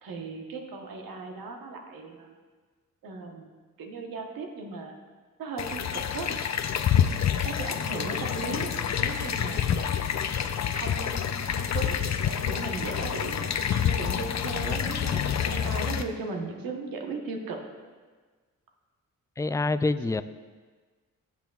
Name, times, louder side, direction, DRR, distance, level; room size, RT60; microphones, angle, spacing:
voice 1, 0.0-2.3 3.0-3.5 3.8-5.0 5.4-6.4 7.4-10.3 10.7-12.0 12.5-17.6, right 3 dB, 85° right, 2 dB, 1.1 m, -37 dB
sound 1, 5.6-16.0, left 8 dB, 55° left, 0.6 m, -28 dB
voice 2, 19.4-20.2, left 3 dB, 10° left, 13 dB, 0.3 m, -26 dB
16.0 x 5.9 x 2.4 m, 1.4 s
cardioid pair, 50°, 34 cm